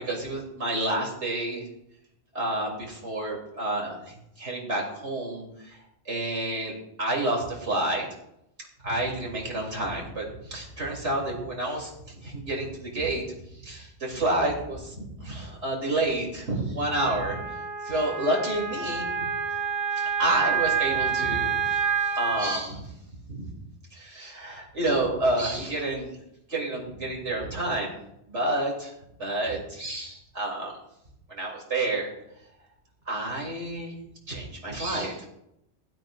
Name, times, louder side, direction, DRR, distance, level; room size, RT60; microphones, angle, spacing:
voice 1, 0.0-1.7 2.3-5.8 6.1-8.1 8.8-13.2 13.6-17.4 17.8-19.3 19.9-22.9 23.3-23.5 23.9-26.2 26.5-28.0 28.3-28.9 29.2-30.7 31.3-32.1 33.1-33.9 34.3-35.3, right 1 dB, 85° right, -1 dB, 3.6 m, -29 dB
Wind instrument woodwind instrument, 16.9-22.6, right 7 dB, 50° right, 2.0 m, -28 dB
16.0 x 12.5 x 2.6 m, 0.80 s
omnidirectional pair, 1.2 m